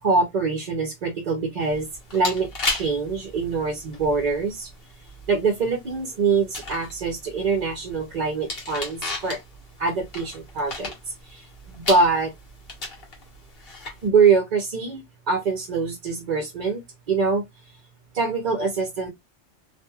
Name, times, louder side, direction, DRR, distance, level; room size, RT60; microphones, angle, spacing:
voice 1, 0.0-1.9 2.1-4.7 5.3-9.4 9.8-10.9 11.7-12.3 14.0-17.4 18.1-19.1, right 4 dB, 50° right, 0.6 m, -24 dB
sound 1, 1.6-14.1, left 3 dB, 55° left, 1.2 m, -36 dB
2.9 x 2.5 x 2.2 m
omnidirectional pair, 1.2 m